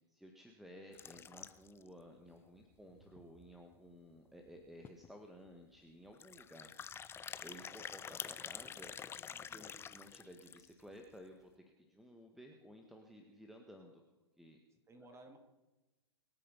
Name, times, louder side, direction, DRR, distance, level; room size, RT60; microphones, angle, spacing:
voice 1, 0.1-8.9 9.4-14.0 14.4-14.6, equal, ahead, 3 dB, 1.6 m, -56 dB
sound 1, 0.9-1.9 2.3-2.4 2.6-2.7 3.2-3.3 4.5-4.6 4.8-5.1 6.1-10.8, left 7 dB, 15° left, 0.6 m, -47 dB
sound 2, 2.4-5.5, right 2 dB, 50° right, 3.6 m, -72 dB
voice 2, 7.4-7.8 9.3-9.6 14.9-15.4, right 2 dB, 20° right, 5 dB, 3.0 m, -59 dB
25.0 x 8.9 x 5.7 m, 1.1 s
figure-of-eight pair, 100°, 14 cm